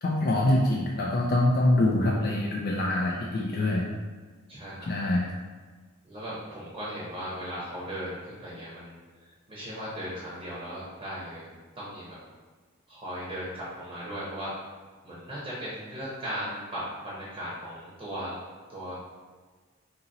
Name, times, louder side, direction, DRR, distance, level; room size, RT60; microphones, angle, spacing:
voice 1, 0.0-3.9 4.8-5.3, left 1 dB, 45° left, -3 dB, 0.3 m, -25 dB
voice 2, 4.5-4.9 6.0-9.0 9.5-12.2 12.9-14.5 15.0-18.4 18.7-18.9, equal, 25° right, -7 dB, 0.8 m, -37 dB
2.7 x 2.7 x 3.9 m, 1.5 s
head